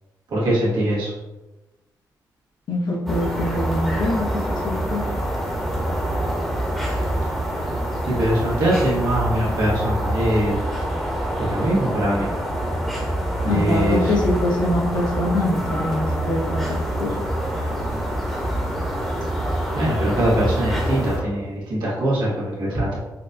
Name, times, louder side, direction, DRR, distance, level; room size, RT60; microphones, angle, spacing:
voice 1, 0.3-1.1 8.1-10.6 11.4-12.3 13.4-14.1 19.7-23.0, right 1 dB, 85° right, -7 dB, 1.4 m, -22 dB
voice 2, 2.7-4.2 4.6-5.0 13.4-16.7 17.0-17.1, left 1 dB, 80° left, -2 dB, 0.8 m, -23 dB
sound 1, 3.1-21.2, right 1 dB, ahead, 0.8 m, -25 dB
4.2 x 2.2 x 2.6 m, 1.1 s
cardioid pair, 90°, 7 cm